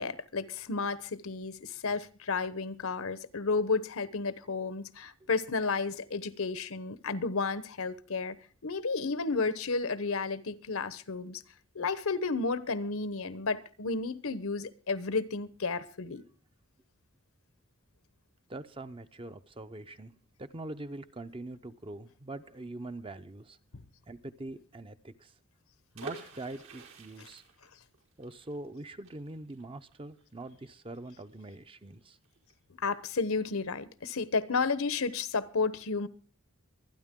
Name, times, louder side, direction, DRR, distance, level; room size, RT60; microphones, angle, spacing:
voice 1, 0.0-8.4 8.6-11.4 11.7-16.2 27.2-27.3 32.8-36.1, left 4 dB, 75° left, 1.0 m, -32 dB
voice 2, 18.5-20.1 20.4-23.6 24.1-25.3 25.9-27.4 28.2-32.2, right 2 dB, 25° right, 0.7 m, -43 dB
sound 1, 25.9-31.6 31.9-32.0 32.2-32.5, right 3 dB, 80° right, 4.7 m, -48 dB
24.5 x 9.8 x 3.7 m
head